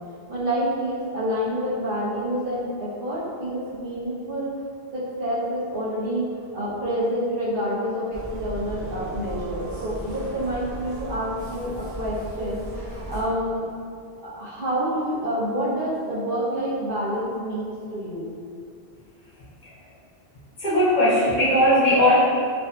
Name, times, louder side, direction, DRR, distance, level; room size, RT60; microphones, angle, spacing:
voice 1, 0.3-4.5 4.9-6.2 6.5-13.7 14.2-18.3, equal, 60° right, -9 dB, 0.8 m, -28 dB
sound 1, 8.1-13.3, equal, 20° right, 0.6 m, -36 dB
voice 2, 20.6-22.2, equal, 55° left, -9 dB, 0.7 m, -18 dB
2.5 x 2.5 x 2.2 m, 2.3 s
omnidirectional pair, 1.1 m